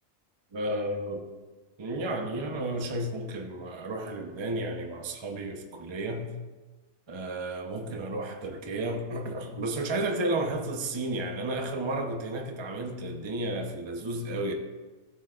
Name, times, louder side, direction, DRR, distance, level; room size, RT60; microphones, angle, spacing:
voice 1, 0.5-1.3 1.8-6.3 7.1-14.5, right 1 dB, 25° right, 0.7 m, -32 dB
16.0 x 7.9 x 2.4 m
omnidirectional pair, 1.4 m